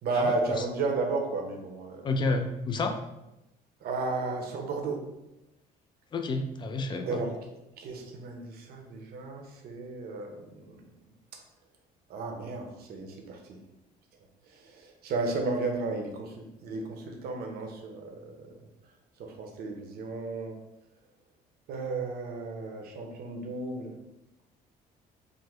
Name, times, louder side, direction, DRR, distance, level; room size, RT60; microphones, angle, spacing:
voice 1, 0.0-2.4 3.8-5.0 7.0-7.4 7.8-10.8 12.1-13.6 14.5-18.5 19.2-20.6 21.7-23.9, right 3 dB, 65° right, 2 dB, 0.7 m, -33 dB
voice 2, 2.0-2.9 6.1-7.2, left 3 dB, 25° left, 6 dB, 0.3 m, -30 dB
3.5 x 2.1 x 3.1 m, 0.92 s
cardioid pair, 110°, 17 cm